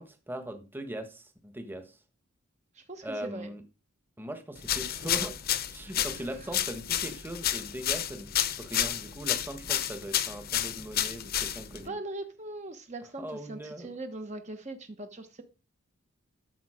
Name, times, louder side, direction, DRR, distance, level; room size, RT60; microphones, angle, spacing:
voice 1, 0.0-2.0 3.0-3.6 4.2-5.3 5.7-11.9 13.2-13.9, right 1 dB, 10° right, 7 dB, 1.3 m, -40 dB
voice 2, 2.7-3.5 6.0-6.5 11.7-15.4, right 2 dB, 30° right, 7 dB, 1.1 m, -41 dB
sound 1, 4.6-11.9, left 11 dB, 45° left, 0.9 m, -31 dB
13.0 x 7.1 x 5.0 m, 0.32 s
head